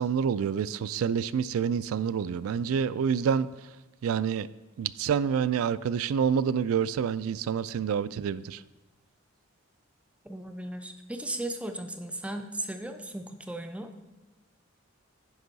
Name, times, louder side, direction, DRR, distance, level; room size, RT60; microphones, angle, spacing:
voice 1, 0.0-3.5 4.0-4.5 4.8-8.6, right 7 dB, 85° right, 16 dB, 0.3 m, -27 dB
voice 2, 10.2-13.9, right 1 dB, 5° right, 6 dB, 0.4 m, -36 dB
9.7 x 5.4 x 4.0 m, 1.1 s
head